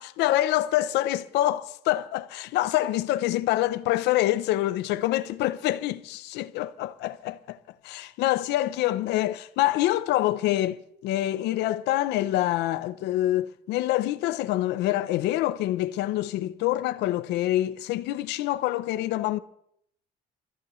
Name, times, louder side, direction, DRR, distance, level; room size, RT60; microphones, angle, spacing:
voice 1, 0.0-7.6 7.8-19.4, left 15 dB, 85° left, 0.7 m, -26 dB
27.0 x 14.5 x 3.1 m
cardioid pair, 110°, 17 cm